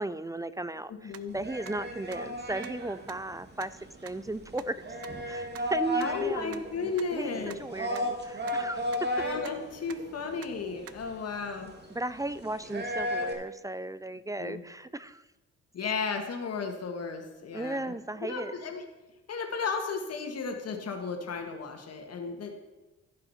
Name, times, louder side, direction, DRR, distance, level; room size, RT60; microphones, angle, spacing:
voice 1, 0.0-4.9 5.3-6.6 7.1-7.3 7.6-9.2 11.9-15.2 17.5-18.6, right 2 dB, 10° right, 15 dB, 0.4 m, -36 dB
voice 2, 1.0-1.4 6.0-7.6 9.1-11.7 14.4-14.6 15.7-18.8 19.3-22.5, left 5 dB, 55° left, 4 dB, 1.9 m, -34 dB
sound 1, 1.1-1.2 1.6-1.7 2.1-2.2 2.6-2.7 3.1-3.2 3.6-3.7 4.1-4.2 4.6-4.7 5.0-5.1 5.5-5.6 6.0-6.1 6.5-6.6 7.0-7.1 7.5-7.6 7.9-8.0 8.5-8.6 8.9-9.0 9.4-9.5 9.9-10.0 10.4-10.5 10.9-11.0, right 10 dB, 50° right, 0.7 m, -45 dB
sound 2, 1.3-13.3, equal, 35° right, 2.2 m, -35 dB
15.0 x 5.6 x 5.7 m, 1.1 s
cardioid pair, 90°, 30 cm